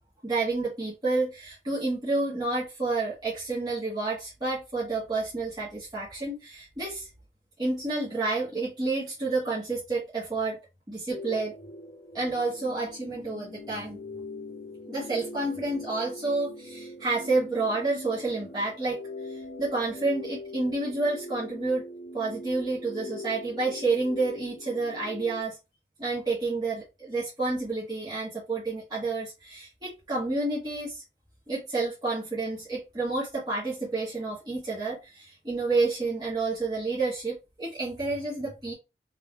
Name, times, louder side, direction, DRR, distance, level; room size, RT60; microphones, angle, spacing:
voice 1, 0.2-7.1 7.6-10.6 10.9-11.5 12.1-14.0 14.9-21.8 22.1-25.6 26.0-31.0 31.5-38.7, right 3 dB, 25° right, -9 dB, 1.3 m, -29 dB
sound 1, 11.1-25.4, left 2 dB, 40° left, 0.6 m, -42 dB
3.7 x 3.2 x 2.3 m, 0.26 s
head